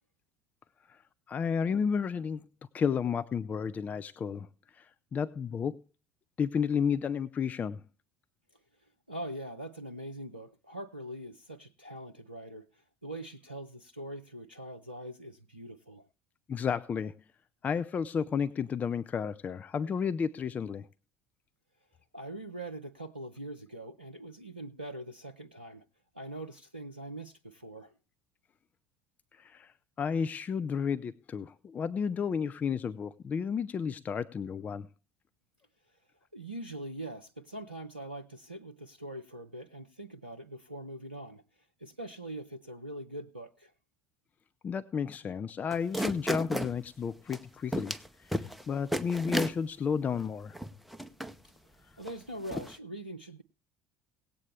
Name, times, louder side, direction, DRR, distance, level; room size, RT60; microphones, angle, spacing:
voice 1, 1.3-2.4 2.7-4.5 4.7-5.8 6.4-7.8 16.5-17.1 17.6-20.9 29.3-29.7 30.0-34.9 44.6-50.6, left 6 dB, 30° left, 13 dB, 0.5 m, -32 dB
voice 2, 9.1-16.1 22.1-25.8 26.1-27.9 36.3-41.4 41.8-43.7 51.4-51.5 52.0-53.4, right 1 dB, 90° right, 6 dB, 0.5 m, -43 dB
sound 1, 45.7-46.7 47.3-47.4 47.7-48.1 48.3-48.6 48.9-49.5 50.2-50.3 50.5-51.3 52.1-52.2 52.5-52.7, equal, ahead, 0.7 m, -33 dB
18.0 x 8.5 x 3.3 m, 0.32 s
figure-of-eight pair, 60°, 5 cm